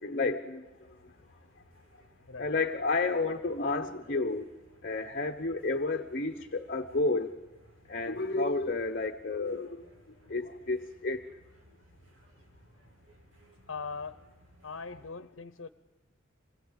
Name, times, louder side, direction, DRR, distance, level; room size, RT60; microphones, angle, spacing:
voice 1, 0.0-0.7 2.4-4.5 4.8-7.3 7.9-9.8 10.3-11.2, left 3 dB, 45° left, 5 dB, 1.0 m, -31 dB
sound 1, 0.6-15.1, equal, 75° right, 3.6 m, -61 dB
voice 2, 13.7-14.2 14.6-15.7, left 4 dB, 90° left, 13 dB, 0.9 m, -40 dB
26.0 x 20.5 x 8.2 m, 1.1 s
head